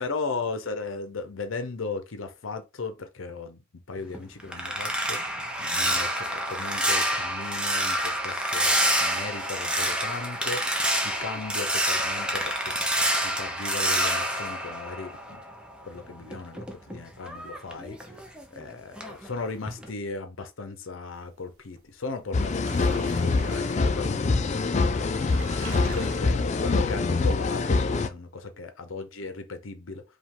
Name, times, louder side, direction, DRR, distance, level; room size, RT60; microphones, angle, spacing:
voice 1, 0.0-12.7 13.2-15.4 15.8-18.2 18.5-24.4 24.8-30.0, left 4 dB, 70° left, 0.7 m, -37 dB
sound 1, 4.0-15.6 16.0-18.6 19.0-19.3 19.7-19.9, right 1 dB, 5° right, 0.7 m, -28 dB
sound 2, 21.8-21.9 22.2-24.0 24.7-24.8 25.0-26.2, right 4 dB, 90° right, 1.0 m, -43 dB
sound 3, 22.3-28.1, left 3 dB, 35° left, 0.4 m, -25 dB
5.0 x 2.3 x 3.6 m
head